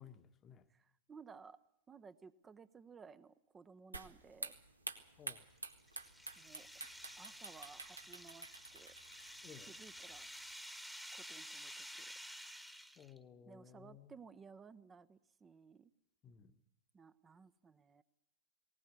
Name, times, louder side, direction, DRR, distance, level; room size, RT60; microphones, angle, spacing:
voice 1, 0.0-0.7 5.2-5.5 9.4-9.7 13.0-14.1 16.2-16.6, left 8 dB, 25° left, 1.1 m, -57 dB
voice 2, 0.7-1.6 1.9-4.5 6.4-6.7 7.2-9.0 9.7-10.3 11.1-11.9 13.4-15.9 16.9-18.0, right 5 dB, 20° right, 0.8 m, -58 dB
sound 1, 3.9-10.5, right 3 dB, 80° right, 1.6 m, -50 dB
sound 2, 5.6-13.2, equal, ahead, 1.3 m, -52 dB
19.5 x 19.0 x 8.2 m
figure-of-eight pair, 90°, 0 cm